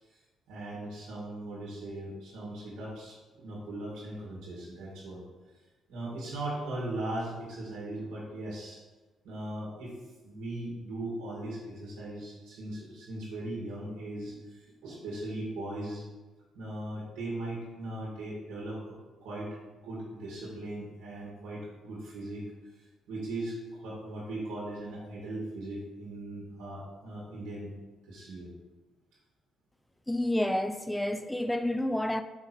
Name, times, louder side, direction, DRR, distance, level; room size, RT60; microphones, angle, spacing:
voice 1, 0.5-5.2 5.9-8.8 9.2-9.9 10.2-16.0 16.5-19.5 19.8-22.4 22.8-23.6 23.8-27.7 28.1-28.5, right 1 dB, 90° right, 1.7 m, -39 dB
voice 2, 30.1-32.2, left 1 dB, 10° left, 0.4 m, -29 dB
5.5 x 3.9 x 4.4 m
cardioid pair, 90°, 0 cm